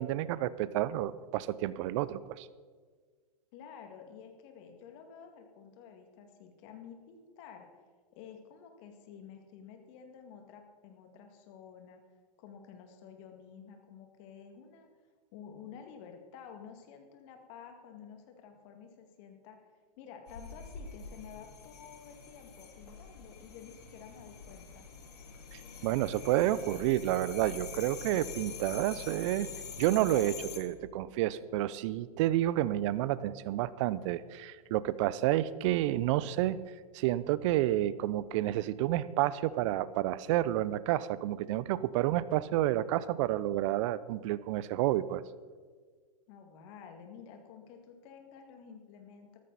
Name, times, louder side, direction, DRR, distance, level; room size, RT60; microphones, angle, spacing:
voice 1, 0.0-2.5 25.5-29.5 29.8-36.6 36.9-45.2, right 14 dB, 50° right, 17 dB, 0.7 m, -30 dB
voice 2, 3.5-7.7 8.1-12.0 12.4-14.9 15.3-19.6 20.0-24.9 46.3-49.4, left 7 dB, 50° left, 5 dB, 2.3 m, -51 dB
sound 1, 20.3-30.6, left 6 dB, 75° left, 2.6 m, -45 dB
14.0 x 13.0 x 4.2 m, 1.5 s
hypercardioid pair, 115°, 20 cm